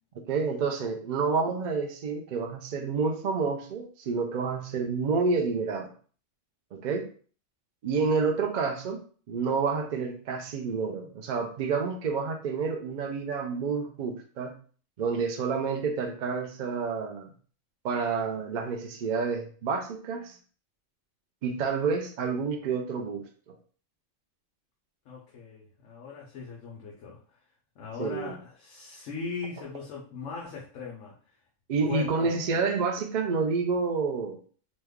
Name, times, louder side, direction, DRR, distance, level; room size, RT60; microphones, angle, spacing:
voice 1, 0.3-5.9 6.7-7.1 7.8-9.0 9.3-14.5 15.0-17.3 17.8-20.4 21.4-23.5 28.0-28.3 31.7-34.4, right 5 dB, 75° right, 4 dB, 0.4 m, -29 dB
voice 2, 25.0-27.4 27.8-31.4 31.9-32.4, left 5 dB, 70° left, -4 dB, 1.0 m, -39 dB
3.0 x 2.2 x 3.5 m, 0.43 s
omnidirectional pair, 1.4 m